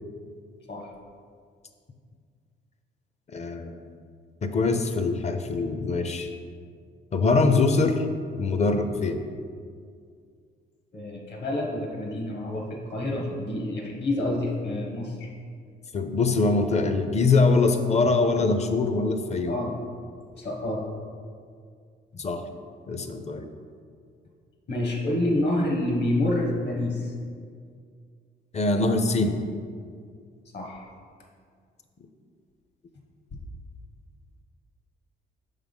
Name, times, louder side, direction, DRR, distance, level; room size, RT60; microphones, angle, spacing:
voice 1, 3.3-3.8 4.4-6.3 7.1-8.0 8.4-9.2 15.9-19.6 22.2-22.4 22.9-23.4 28.5-29.4, left 3 dB, 35° left, 7 dB, 0.6 m, -23 dB
voice 2, 10.9-12.6 12.9-15.3 19.5-19.7 20.4-20.9 24.7-27.1 30.5-30.9 33.3-33.4, left 1 dB, 60° left, 0 dB, 1.4 m, -28 dB
5.9 x 3.6 x 5.4 m, 2.2 s
cardioid pair, 90°, 20 cm